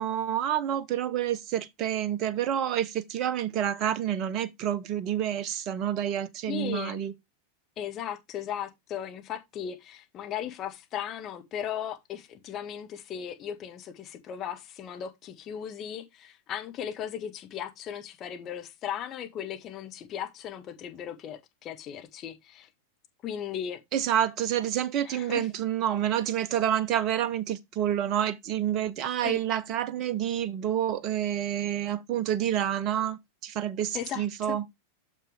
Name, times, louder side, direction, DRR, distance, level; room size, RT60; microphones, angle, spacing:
voice 1, 0.0-7.1 23.9-34.6, right 10 dB, 35° right, 0.8 m, -28 dB
voice 2, 6.5-7.0 7.8-22.7 23.2-23.8 25.0-25.5 29.2-29.4 33.9-34.2, left 9 dB, 30° left, 1.5 m, -37 dB
6.8 x 6.0 x 3.4 m
figure-of-eight pair, 90°, 0 cm